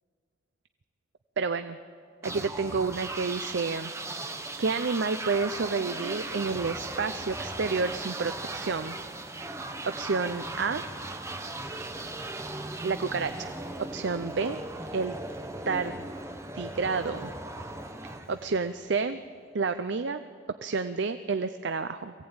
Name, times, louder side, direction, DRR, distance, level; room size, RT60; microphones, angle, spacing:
voice 1, 1.4-1.8 2.2-3.9 4.3-9.0 9.4-10.8 12.8-13.5 13.9-14.6 14.9-15.2 15.7-16.1 16.5-17.3 18.0-19.2 19.5-20.2 20.6-22.1, right 4 dB, 65° right, 9 dB, 0.6 m, -30 dB
sound 1, 2.2-19.0, right 2 dB, 15° right, 1.0 m, -38 dB
23.5 x 16.5 x 8.8 m, 2.3 s
head